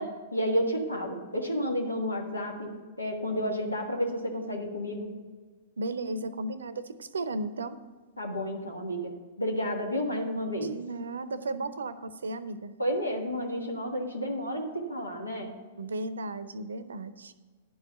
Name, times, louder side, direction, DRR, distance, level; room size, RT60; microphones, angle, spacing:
voice 1, 0.0-2.7 3.0-5.1 8.2-10.7 11.5-11.6 12.8-15.5, equal, 85° left, 2 dB, 1.6 m, -31 dB
voice 2, 5.8-7.8 10.7-12.7 15.8-17.3, right 2 dB, 70° right, 14 dB, 0.6 m, -35 dB
10.5 x 4.8 x 7.8 m, 1.4 s
figure-of-eight pair, 105°, 0 cm